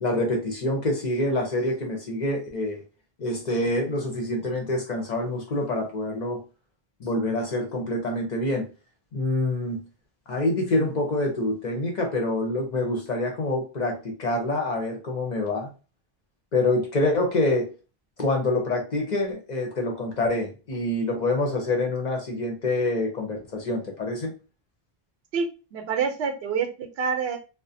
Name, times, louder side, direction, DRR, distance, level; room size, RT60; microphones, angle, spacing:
voice 1, 0.0-2.8 3.2-6.4 7.0-8.7 9.1-9.8 10.3-15.7 16.5-17.7 18.2-24.3, left 2 dB, 50° left, 1 dB, 0.6 m, -26 dB
voice 2, 25.3-27.4, right 6 dB, 75° right, 4 dB, 0.8 m, -27 dB
2.3 x 2.0 x 2.6 m, 0.32 s
omnidirectional pair, 1.1 m